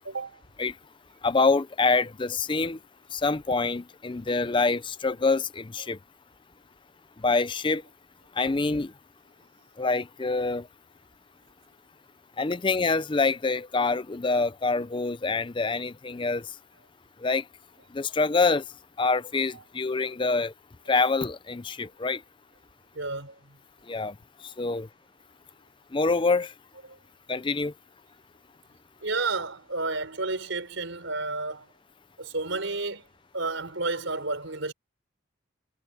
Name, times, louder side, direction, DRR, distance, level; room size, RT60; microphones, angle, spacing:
voice 1, 0.0-0.4 19.5-19.6 22.9-23.6 29.0-31.7 32.2-33.0 33.3-34.7, right 3 dB, 70° right, 4.5 m, -31 dB
voice 2, 1.2-2.8 3.1-6.0 7.2-7.8 8.4-8.9 9.8-10.7 12.4-16.5 17.2-17.4 17.9-18.6 19.0-20.5 20.9-22.2 23.9-24.1 24.6-24.9 25.9-26.5 27.3-27.7, left 3 dB, 25° left, 0.5 m, -26 dB
head